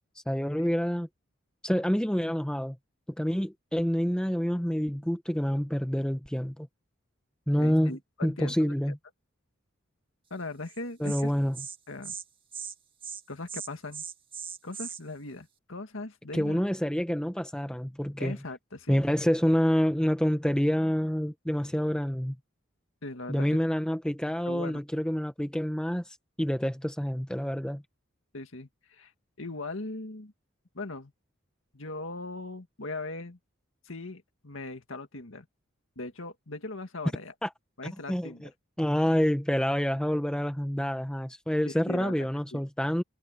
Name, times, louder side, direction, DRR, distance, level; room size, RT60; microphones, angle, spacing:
voice 1, 0.3-1.1 1.6-2.8 3.2-6.7 7.5-7.9 8.2-9.0 11.0-11.6 16.3-18.3 18.9-22.4 23.3-26.0 26.4-27.8 37.4-37.5 38.1-38.5 38.8-43.0, equal, 5° left, 0.8 m, -27 dB
voice 2, 7.5-8.7 10.3-11.3 11.9-12.1 13.3-14.0 14.6-16.6 18.2-19.0 23.0-23.6 24.4-24.8 28.3-29.1 29.4-30.3 30.7-31.1 31.7-33.4 33.8-35.5 36.0-37.3 37.8-38.5 41.6-42.1 42.5-42.6, left 2 dB, 70° left, 2.0 m, -39 dB
Insect, 10.7-10.8 11.0-11.2 11.5-11.8 12.0-12.2 12.5-12.7 13.0-13.2 13.5-15.0, right 7 dB, 25° right, 2.0 m, -39 dB
head